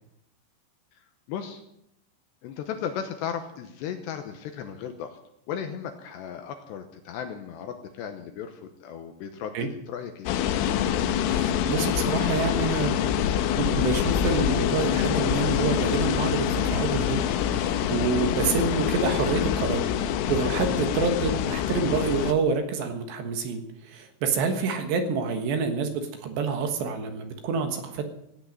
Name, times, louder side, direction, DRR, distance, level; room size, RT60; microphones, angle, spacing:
voice 1, 0.9-1.6 2.4-5.2 5.5-10.3 21.2-21.5, left 8 dB, 75° left, 6 dB, 2.8 m, -36 dB
sound 1, 10.3-22.3, left 9 dB, 90° left, 3.5 m, -25 dB
voice 2, 11.2-13.0 13.6-19.8 20.3-28.0, right 5 dB, 65° right, 6 dB, 3.3 m, -27 dB
16.5 x 9.0 x 7.8 m, 0.79 s
omnidirectional pair, 5.8 m